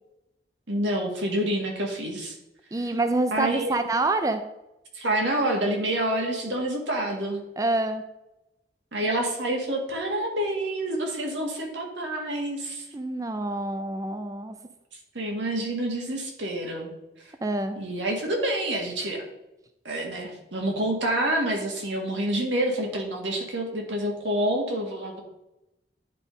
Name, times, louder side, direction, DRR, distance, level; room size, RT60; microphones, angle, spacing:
voice 1, 0.7-2.3 3.3-3.8 4.9-7.4 8.9-12.8 15.1-16.9 17.8-19.2 19.9-25.2, right 1 dB, 90° right, 1 dB, 1.8 m, -27 dB
voice 2, 2.7-4.4 7.6-8.0 12.9-14.5 17.4-17.8, right 2 dB, 20° right, 8 dB, 0.4 m, -26 dB
10.5 x 3.6 x 5.0 m, 0.91 s
head